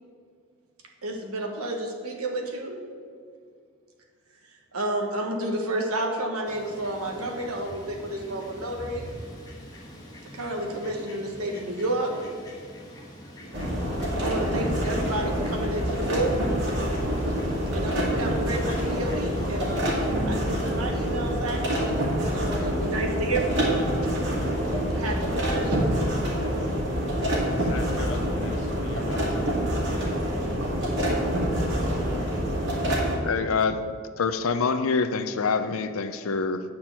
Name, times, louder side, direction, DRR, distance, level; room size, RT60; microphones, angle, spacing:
voice 1, 1.0-2.8 4.7-9.0 10.3-12.1 14.2-16.4 17.7-19.9 20.2-23.9 24.9-25.8, right 1 dB, 85° right, 1 dB, 1.3 m, -30 dB
Fowl, 6.5-20.1, equal, 15° left, 1.4 m, -44 dB
sound 1, 13.5-33.2, equal, 55° right, 2.2 m, -26 dB
voice 2, 27.5-29.6, left 2 dB, 55° left, 3 dB, 1.0 m, -38 dB
voice 3, 33.2-33.8 34.2-36.6, left 4 dB, 70° left, 10 dB, 0.5 m, -25 dB
8.7 x 4.4 x 7.4 m, 2.1 s
head